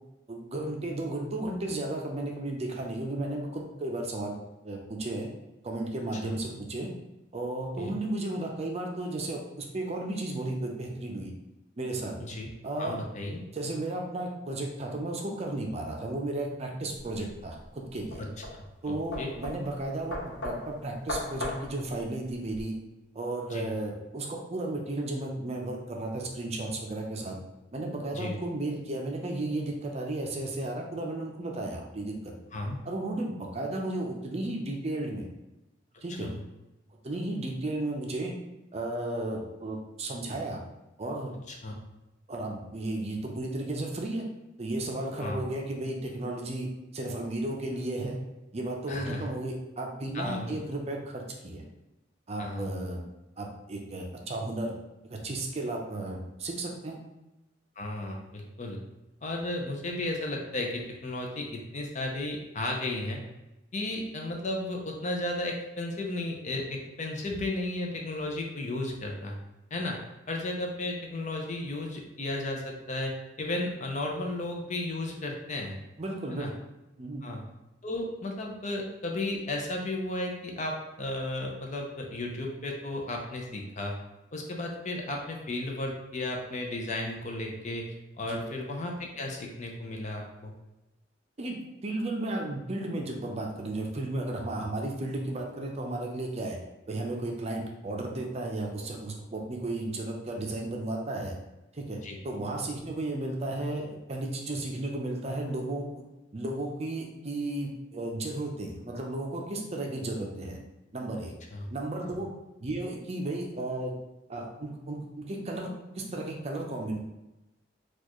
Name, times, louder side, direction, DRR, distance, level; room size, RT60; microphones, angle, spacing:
voice 1, 0.3-4.3 4.6-5.3 5.6-6.9 7.3-11.3 11.8-12.2 12.6-13.0 13.5-18.2 18.8-20.2 20.4-22.7 23.1-27.4 27.7-32.3 32.9-35.3 36.0-36.3 37.0-38.3 38.7-40.6 41.0-41.4 42.3-44.2 44.6-46.7 46.9-48.2 48.5-51.6 52.3-53.0 53.4-54.7 55.1-57.0 76.0-76.5 77.0-77.2 88.3-88.4 91.4-96.6 96.9-101.3 101.7-102.0 102.2-105.9 106.3-110.6 110.9-111.3 111.7-112.3 112.6-113.9 114.3-117.0, right 2 dB, 35° right, 1 dB, 0.5 m, -34 dB
voice 2, 12.8-13.4 18.2-18.3 18.5-19.3 23.5-23.7 28.1-28.4 32.5-32.8 36.2-36.4 41.5-41.7 45.2-45.4 48.9-49.3 50.1-50.6 52.4-52.7 57.8-58.8 59.2-63.2 63.7-69.3 69.7-70.0 70.3-75.8 76.3-76.5 77.2-77.4 77.8-83.9 84.3-90.5 102.0-102.2 111.5-111.7, left 2 dB, 40° left, 1 dB, 0.6 m, -34 dB
sound 1, 16.9-22.6, left 1 dB, 75° left, 1.1 m, -38 dB
4.3 x 2.4 x 3.0 m, 0.97 s
head